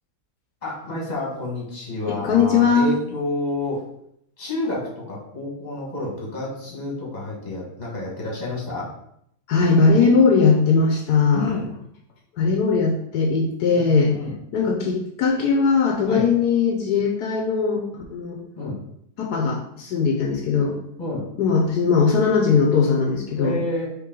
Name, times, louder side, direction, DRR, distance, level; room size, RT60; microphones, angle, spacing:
voice 1, 0.6-3.8 4.4-8.9 11.3-11.7 13.7-14.3 16.1-16.2 18.6-18.8 21.0-21.2 23.4-24.0, left 2 dB, 30° left, -4 dB, 1.6 m, -29 dB
voice 2, 2.1-2.9 9.5-11.5 12.4-14.1 14.5-18.4 19.2-20.8 21.4-23.6, left 5 dB, 75° left, 0 dB, 1.2 m, -19 dB
4.6 x 3.1 x 3.7 m, 0.72 s
omnidirectional pair, 1.7 m